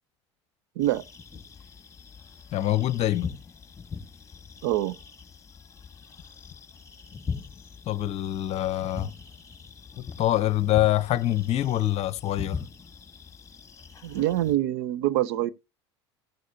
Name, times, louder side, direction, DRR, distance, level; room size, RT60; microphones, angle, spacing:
sound 1, 0.8-14.5, left 5 dB, 20° left, 2.3 m, -41 dB
voice 1, 2.5-3.3 7.8-9.1 10.0-12.6, left 14 dB, 45° left, 0.9 m, -25 dB
voice 2, 4.6-5.0 14.0-15.5, right 14 dB, 70° right, 0.8 m, -25 dB
16.0 x 6.5 x 2.7 m
hypercardioid pair, 80°, 15 cm